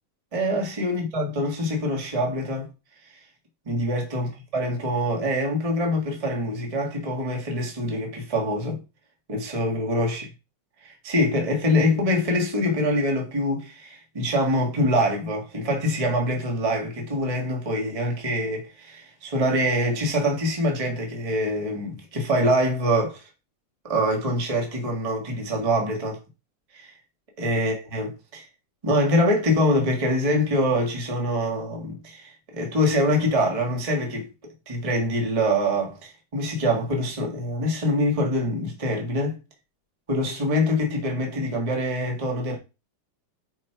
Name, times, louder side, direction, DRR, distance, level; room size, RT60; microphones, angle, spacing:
voice 1, 0.3-2.7 3.6-8.8 9.3-10.3 10.8-23.2 23.8-26.2 26.7-26.9 27.4-28.5 28.8-34.3 34.7-39.4 40.1-42.6, equal, 35° right, 0.5 m, -24 dB
5.8 x 4.6 x 4.5 m
omnidirectional pair, 3.6 m